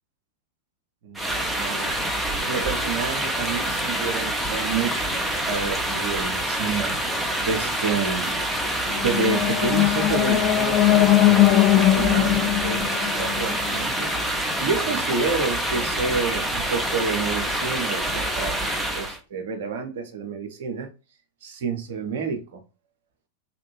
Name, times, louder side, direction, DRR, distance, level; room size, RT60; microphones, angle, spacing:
voice 1, 1.0-1.9 2.5-7.0 7.4-8.3 9.0-14.1 14.6-20.9 21.4-22.6, right 5 dB, 55° right, 0.6 m, -29 dB
sound 1, 1.2-19.2, right 1 dB, 5° right, 0.6 m, -26 dB
sound 2, 8.9-14.0, left 14 dB, 35° left, 0.3 m, -20 dB
3.0 x 2.5 x 3.0 m
figure-of-eight pair, 90°, 0 cm